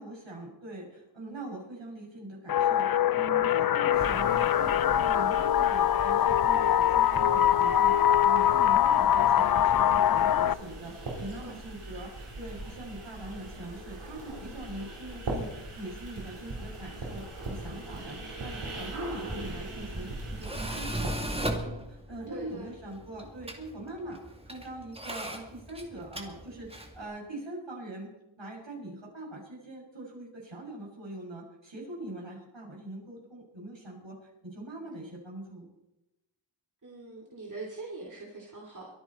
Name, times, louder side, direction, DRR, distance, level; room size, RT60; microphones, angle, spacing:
voice 1, 0.0-24.2 24.5-28.1 28.4-35.7, right 1 dB, 65° right, -2 dB, 6.9 m, -42 dB
sound 1, 2.5-10.5, left 10 dB, 50° left, 0.5 m, -23 dB
sound 2, 3.9-21.1, right 2 dB, 90° right, 4.5 m, -41 dB
voice 2, 11.1-11.6 14.3-14.7 22.3-22.7 36.8-38.9, right 3 dB, 40° right, -1 dB, 3.0 m, -43 dB
Tools, 19.1-27.0, right 1 dB, 10° right, 2.2 m, -38 dB
23.0 x 10.5 x 4.4 m, 0.94 s
cardioid pair, 55°, 49 cm